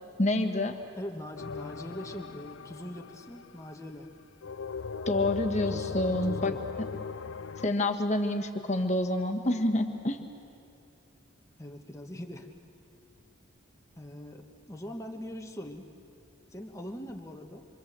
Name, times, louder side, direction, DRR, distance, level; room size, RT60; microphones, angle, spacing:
voice 1, 0.2-0.8 5.1-6.5 7.6-10.2, left 1 dB, 35° left, 5 dB, 1.6 m, -27 dB
voice 2, 1.0-4.1 5.6-6.6 11.6-12.5 14.0-15.9 16.5-17.7, left 1 dB, 15° left, 3 dB, 1.3 m, -42 dB
sound 1, 1.4-3.8 4.4-7.7, left 5 dB, 70° left, 0.5 m, -38 dB
26.0 x 25.0 x 7.7 m, 2.6 s
head